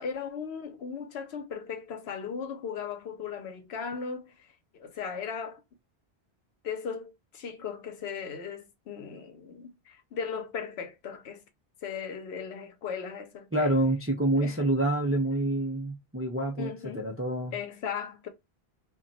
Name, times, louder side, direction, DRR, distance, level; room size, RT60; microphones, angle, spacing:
voice 1, 0.0-4.5 4.7-5.6 6.6-11.4 11.8-13.7 14.3-14.6 16.6-17.1 17.5-18.3, left 6 dB, 80° left, 0.9 m, -37 dB
voice 2, 13.5-16.7 17.0-17.5, right 1 dB, 20° right, 0.3 m, -27 dB
2.3 x 2.2 x 3.8 m
omnidirectional pair, 1.1 m